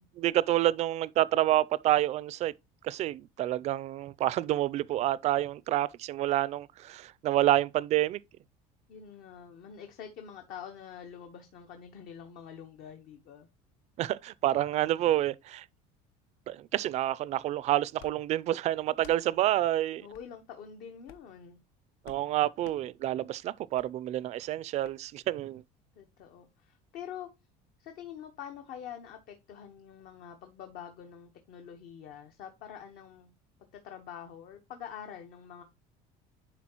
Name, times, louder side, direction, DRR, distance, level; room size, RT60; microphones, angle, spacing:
voice 1, 0.2-2.5 2.8-8.2 14.0-15.6 16.5-20.0 22.1-25.6, right 14 dB, 45° right, 0.4 m, -28 dB
voice 2, 8.9-13.5 20.0-21.6 25.9-27.3 27.8-33.3 33.7-35.6, left 8 dB, 65° left, 1.1 m, -46 dB
sound 1, 18.0-18.2 18.9-19.2 20.1-20.3 21.0-21.3 22.0-22.2 22.6-22.8 23.7-23.9 24.8-25.0, left 8 dB, 85° left, 0.9 m, -53 dB
10.0 x 4.0 x 2.9 m
cardioid pair, 130°, 16 cm